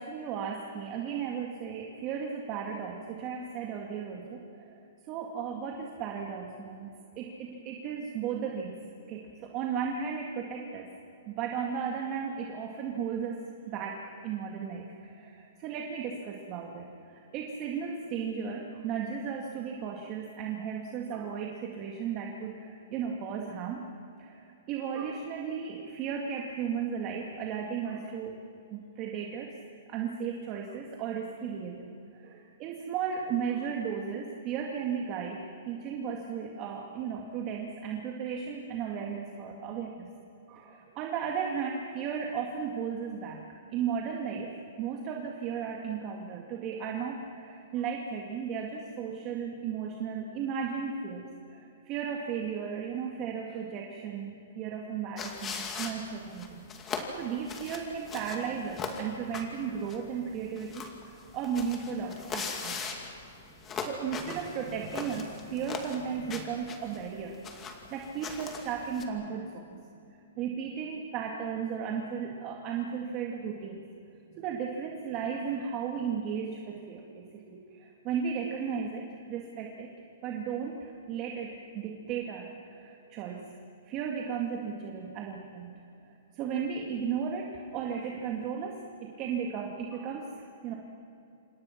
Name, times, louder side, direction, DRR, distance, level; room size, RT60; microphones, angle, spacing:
voice 1, 0.0-4.8 5.1-8.8 9.1-10.9 11.3-23.9 24.2-28.4 28.7-29.5 29.9-40.1 40.5-62.8 63.8-69.8 70.4-73.8 74.3-79.9 80.2-83.5 83.8-85.7 86.3-90.8, right 7 dB, 30° right, 0 dB, 2.2 m, -35 dB
sound 1, 55.2-69.0, left 5 dB, 20° left, 2.4 m, -40 dB
27.0 x 27.0 x 6.0 m, 2.7 s
hypercardioid pair, 150°, 0 cm